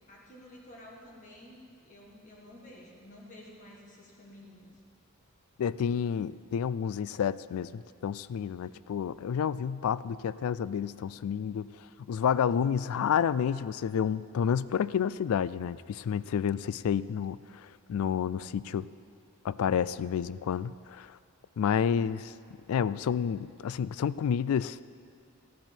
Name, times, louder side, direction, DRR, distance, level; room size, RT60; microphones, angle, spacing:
voice 1, 0.1-4.8, left 1 dB, 35° left, -3 dB, 1.6 m, -51 dB
voice 2, 5.6-11.7 12.1-18.9 19.4-21.2 21.6-22.3 22.7-24.8, left 7 dB, 70° left, 17 dB, 0.3 m, -30 dB
14.0 x 11.5 x 4.5 m, 2.3 s
head